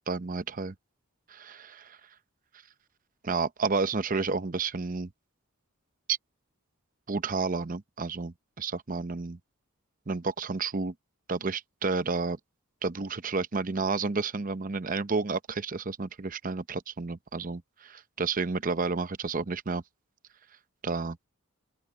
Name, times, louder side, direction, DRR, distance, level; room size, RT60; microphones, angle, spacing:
voice 1, 0.1-0.7 3.2-5.1 6.1-6.2 7.1-9.4 10.1-10.9 11.3-12.4 12.8-19.8 20.8-21.2, right 4 dB, 40° right, 0.7 m, -30 dB
open air
head